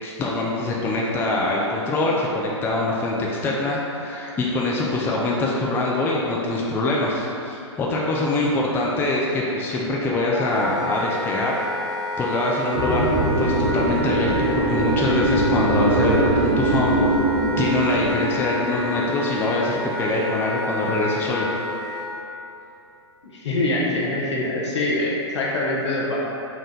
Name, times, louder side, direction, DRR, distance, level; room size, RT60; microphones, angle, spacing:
voice 1, 0.0-11.7 12.2-17.0 17.6-21.5, left 2 dB, 15° left, -4 dB, 0.4 m, -24 dB
Wind instrument woodwind instrument, 10.3-22.1, left 1 dB, 15° right, 0.8 m, -30 dB
sound 1, 12.7-19.4, right 2 dB, 50° right, 0.8 m, -22 dB
voice 2, 23.3-26.2, left 2 dB, 70° left, -4 dB, 0.9 m, -24 dB
4.2 x 2.4 x 3.8 m, 2.8 s
hypercardioid pair, 115°, 15 cm